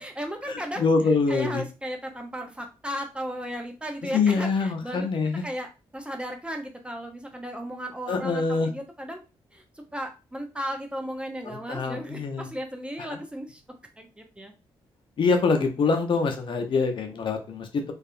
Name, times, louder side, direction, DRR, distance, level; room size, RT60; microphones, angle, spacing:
voice 1, 0.0-0.9 1.3-5.1 5.4-9.2 9.5-9.6 9.9-13.6 14.0-14.5, equal, 10° right, 4 dB, 0.6 m, -35 dB
voice 2, 0.8-1.6 4.1-5.4 8.1-8.7 11.4-12.5 13.1-13.2 15.2-17.7, left 4 dB, 55° left, 5 dB, 0.6 m, -24 dB
2.6 x 2.4 x 2.4 m, 0.30 s
supercardioid pair, 65°, 10 cm